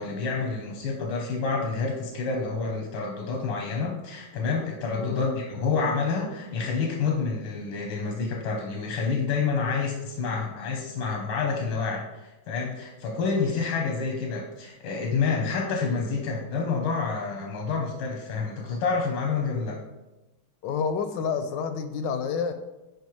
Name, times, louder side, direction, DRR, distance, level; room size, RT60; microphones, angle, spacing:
voice 1, 0.0-19.8, left 4 dB, 90° left, 1 dB, 1.8 m, -28 dB
voice 2, 20.6-22.5, left 6 dB, 75° left, 9 dB, 1.1 m, -28 dB
10.5 x 4.8 x 3.1 m, 1.0 s
omnidirectional pair, 2.2 m